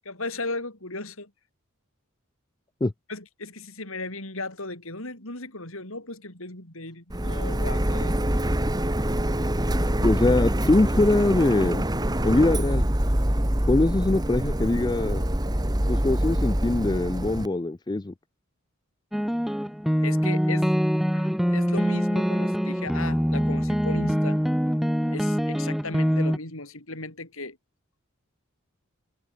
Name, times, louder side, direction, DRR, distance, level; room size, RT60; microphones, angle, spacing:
voice 1, 0.0-1.3 3.1-8.2 20.0-20.7 21.1-24.4 25.1-27.6, left 2 dB, 65° left, 5.9 m, -36 dB
Printer, 7.1-17.5, right 1 dB, 20° right, 1.9 m, -25 dB
voice 2, 10.0-11.8 12.2-12.9 13.7-15.2 15.9-18.1, left 2 dB, 20° left, 0.4 m, -22 dB
sound 1, 19.1-26.4, equal, ahead, 1.4 m, -24 dB
head